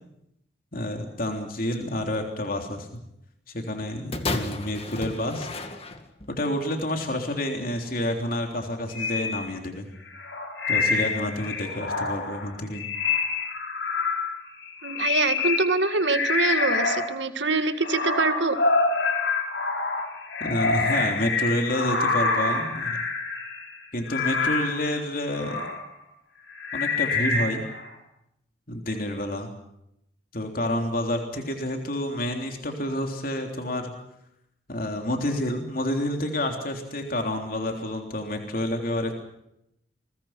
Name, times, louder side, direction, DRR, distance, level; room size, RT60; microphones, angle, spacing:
voice 1, 0.7-3.0 3.5-5.5 6.3-9.9 10.7-12.9 20.4-23.1 23.9-25.7 26.7-27.6 28.7-29.5 30.3-33.9 34.7-39.1, left 1 dB, 50° left, 3 dB, 3.5 m, -29 dB
sound 1, 4.1-6.4 7.2-7.3, left 2 dB, 30° left, 2.1 m, -33 dB
sound 2, 8.9-9.4 10.1-17.1 17.4-25.8 26.5-27.9, left 4 dB, 85° left, 5.5 m, -27 dB
voice 2, 14.8-18.6, right 3 dB, 80° right, 9 dB, 1.9 m, -24 dB
28.5 x 22.5 x 6.0 m, 0.80 s
head